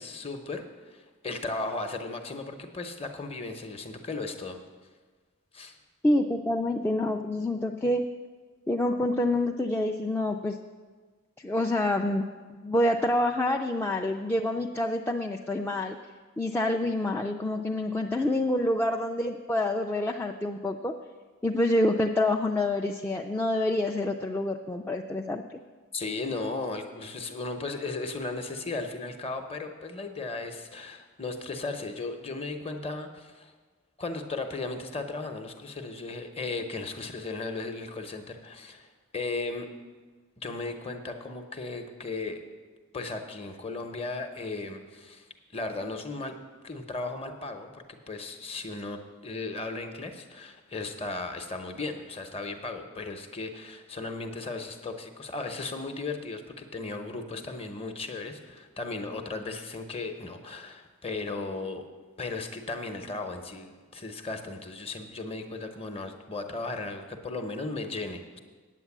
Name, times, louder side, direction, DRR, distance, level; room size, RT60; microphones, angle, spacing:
voice 1, 0.0-4.6 5.5-5.8 25.9-33.5 34.0-39.7 40.4-42.4 42.9-45.3 45.5-46.4 46.6-61.9 62.2-68.4, left 3 dB, 25° left, 6 dB, 0.8 m, -36 dB
voice 2, 6.0-8.1 8.7-10.6 11.4-12.3 12.6-16.0 16.4-20.9 21.4-25.6, left 1 dB, 10° left, 1 dB, 0.3 m, -27 dB
9.1 x 8.2 x 7.2 m, 1.4 s
head